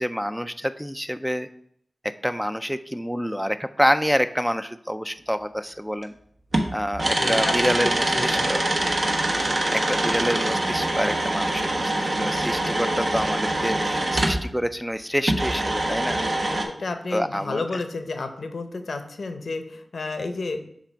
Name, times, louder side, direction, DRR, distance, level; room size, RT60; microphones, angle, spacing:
voice 1, 0.0-1.5 2.2-6.1 6.7-8.6 9.3-16.2 17.1-17.6, equal, ahead, 10 dB, 0.3 m, -27 dB
sound 1, 6.0-6.1 6.5-14.4 15.2-16.6, right 1 dB, 55° right, 1.0 m, -24 dB
voice 2, 7.2-7.6 8.1-8.5 16.6-20.6, left 3 dB, 80° left, 7 dB, 0.7 m, -31 dB
7.3 x 2.5 x 5.6 m, 0.69 s
cardioid pair, 50°, 0 cm